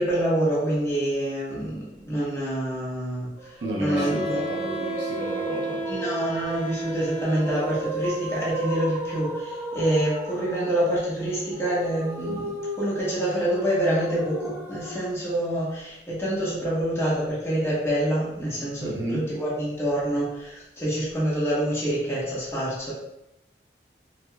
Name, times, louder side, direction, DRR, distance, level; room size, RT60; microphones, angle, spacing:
voice 1, 0.0-4.4 5.8-22.9, right 1 dB, 15° left, -8 dB, 0.9 m, -26 dB
sound 1, 3.4-15.1, equal, 15° right, 0.6 m, -34 dB
voice 2, 3.6-5.9 18.8-19.3, right 1 dB, 70° right, -1 dB, 0.6 m, -32 dB
Wind instrument woodwind instrument, 3.9-8.0, right 4 dB, 90° left, 1.1 m, -33 dB
4.6 x 2.2 x 2.2 m, 0.85 s
head